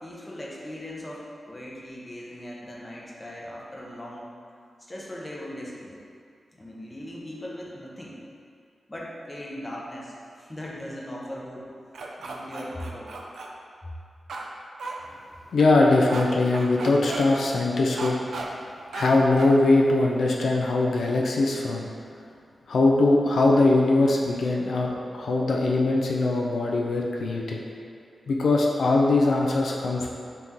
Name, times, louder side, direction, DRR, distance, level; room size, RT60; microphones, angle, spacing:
voice 1, 0.0-4.3 4.8-6.0 6.5-8.2 8.9-11.7 12.2-13.1 13.8-13.9, left 1 dB, 15° left, -4 dB, 0.6 m, -39 dB
sound 1, 11.9-13.5 14.3-14.5 14.8-14.9 16.1-16.2 16.5-17.2 18.0-18.5 18.9-19.1 19.4-19.5, right 3 dB, 90° right, 0.4 m, -34 dB
voice 2, 15.5-18.1 18.9-21.9 22.7-27.6 28.3-30.1, left 2 dB, 75° left, -2 dB, 0.4 m, -21 dB
3.9 x 3.0 x 3.5 m, 2.4 s
wide cardioid pair, 130°, 0 cm